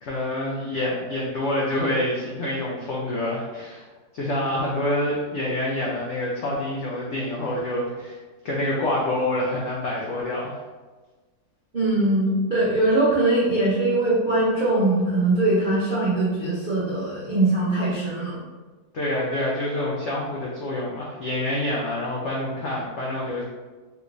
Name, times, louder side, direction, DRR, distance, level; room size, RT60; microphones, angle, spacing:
voice 1, 0.0-3.9 4.1-8.2 8.4-10.6 18.9-23.4, left 1 dB, 85° left, -4 dB, 0.6 m, -27 dB
voice 2, 11.7-18.4, right 2 dB, 75° right, -8 dB, 0.4 m, -21 dB
3.3 x 3.0 x 2.5 m, 1.3 s
omnidirectional pair, 1.8 m